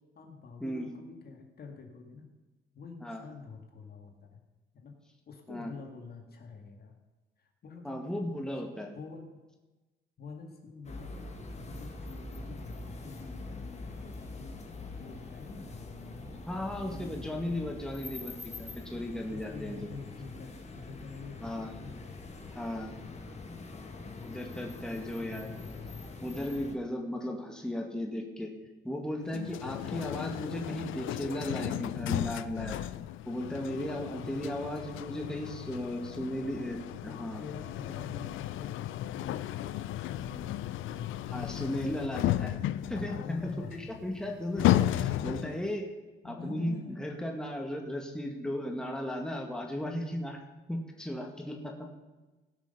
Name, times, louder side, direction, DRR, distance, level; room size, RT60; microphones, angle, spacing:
voice 1, 0.2-2.3 2.7-4.4 4.7-4.9 5.3-7.0 7.4-8.3 8.9-9.4 10.2-11.3 11.5-14.6 15.0-17.3 19.2-22.1 22.9-23.4 23.9-26.1 26.8-26.9 27.2-27.3 34.1-34.5 37.0-41.5 43.0-43.9 44.6-44.7 45.2-45.3 46.2-47.0, left 4 dB, 50° left, 3 dB, 2.1 m, -47 dB
voice 2, 7.8-8.9 16.5-19.9 21.4-21.7 22.5-22.9 24.2-25.4 26.2-28.5 28.8-32.8 33.3-37.4 41.3-42.5 42.9-45.9 46.2-50.4 50.7-52.0, left 1 dB, 5° left, 1 dB, 1.9 m, -36 dB
sound 1, 10.8-26.8, left 2 dB, 35° left, 1.8 m, -44 dB
sound 2, 29.3-45.7, left 14 dB, 80° left, 0.5 m, -34 dB
17.5 x 6.2 x 5.5 m, 1.2 s
cardioid pair, 90°, 20 cm